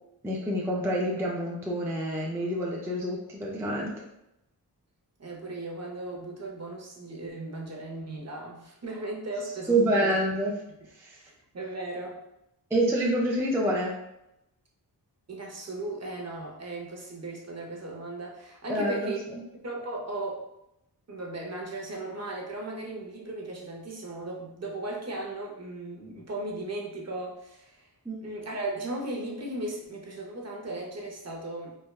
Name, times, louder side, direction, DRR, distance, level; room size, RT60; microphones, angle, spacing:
voice 1, 0.2-3.9 9.7-10.5 11.0-11.2 12.7-13.9 18.7-19.1 28.1-28.2, right 1 dB, 5° right, -2 dB, 0.4 m, -27 dB
voice 2, 5.2-10.2 11.2-12.2 15.3-19.2 19.6-20.4 21.1-27.9 28.2-31.8, right 2 dB, 40° right, -1 dB, 0.6 m, -36 dB
3.4 x 2.1 x 2.3 m, 0.85 s
wide cardioid pair, 100°, 40 cm